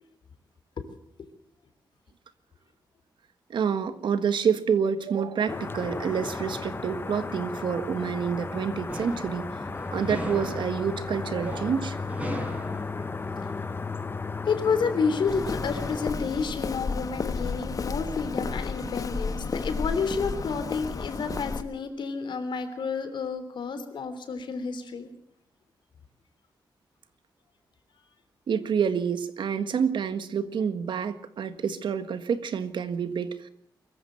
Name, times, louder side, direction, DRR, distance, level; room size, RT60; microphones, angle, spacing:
voice 1, 3.5-9.5 9.9-12.0 28.5-33.5, right 7 dB, 80° right, 11 dB, 1.6 m, -28 dB
sound 1, 5.5-16.1, left 4 dB, 30° left, 0.8 m, -34 dB
sound 2, 8.5-13.6, equal, 15° right, 5.2 m, -39 dB
voice 2, 14.5-25.1, left 5 dB, 80° left, 9 dB, 3.4 m, -30 dB
Walk footsteps, 15.3-21.6, left 4 dB, 45° left, 1.3 m, -32 dB
23.0 x 14.5 x 7.8 m, 0.70 s
wide cardioid pair, 120°, 8 cm